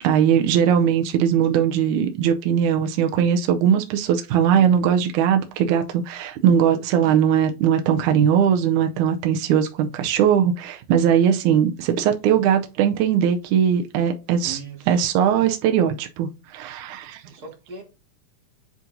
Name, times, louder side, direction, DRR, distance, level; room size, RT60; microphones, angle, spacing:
voice 1, 0.0-14.6 14.9-17.2, right 8 dB, 85° right, 2.1 m, -20 dB
voice 2, 14.4-15.1 17.3-17.8, right 5 dB, 40° right, 1.8 m, -39 dB
10.0 x 3.9 x 2.6 m
omnidirectional pair, 3.4 m